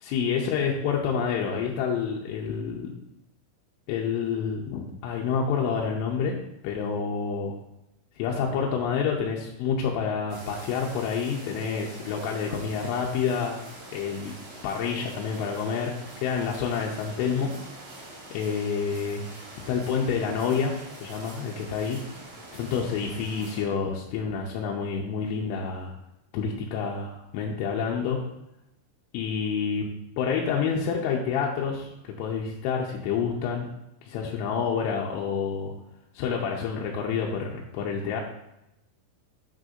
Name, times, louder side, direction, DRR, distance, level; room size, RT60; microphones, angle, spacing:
voice 1, 0.0-2.9 3.9-6.3 6.6-7.6 8.2-13.6 13.9-14.3 14.6-17.5 18.3-19.2 19.7-22.0 22.5-25.9 26.3-28.2 29.1-29.9 30.2-31.9 32.2-33.7 34.0-35.7 36.2-38.2, left 6 dB, 90° left, -2 dB, 3.1 m, -28 dB
sound 1, 10.3-23.6, right 2 dB, 65° right, 4.1 m, -44 dB
8.5 x 6.2 x 2.6 m, 0.85 s
omnidirectional pair, 5.7 m